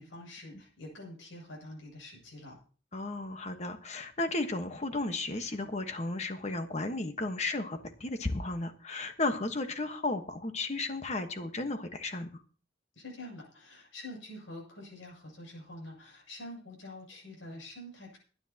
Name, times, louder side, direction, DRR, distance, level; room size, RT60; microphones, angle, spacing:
voice 1, 0.0-2.6 13.0-18.2, left 1 dB, 80° left, -1 dB, 7.1 m, -46 dB
voice 2, 2.9-12.4, left 2 dB, 35° left, 7 dB, 1.3 m, -34 dB
23.0 x 10.0 x 2.9 m, 0.39 s
head